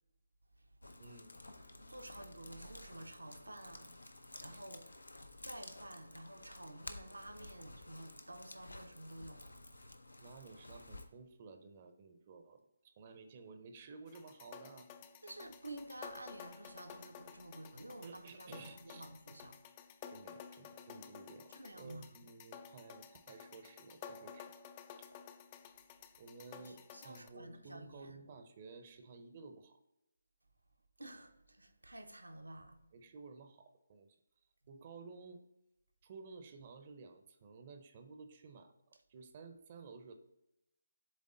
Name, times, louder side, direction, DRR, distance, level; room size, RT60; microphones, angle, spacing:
sound 1, 0.8-11.1, left 2 dB, 85° left, 0.7 m, -53 dB
voice 1, 1.0-1.3 4.5-4.6 10.2-14.9 18.0-19.1 20.1-24.5 25.0-25.1 26.2-29.8 32.9-34.2 34.7-35.4 36.0-40.1, right 4 dB, 35° right, 0.6 m, -54 dB
voice 2, 1.7-3.9 4.2-4.8 5.4-9.5 15.2-19.6 21.5-22.1 26.5-28.2 31.0-32.8, right 1 dB, 85° right, 0.9 m, -51 dB
sound 2, 14.1-27.3, left 8 dB, 25° left, 0.4 m, -53 dB
7.6 x 3.6 x 3.8 m
figure-of-eight pair, 150°, 0 cm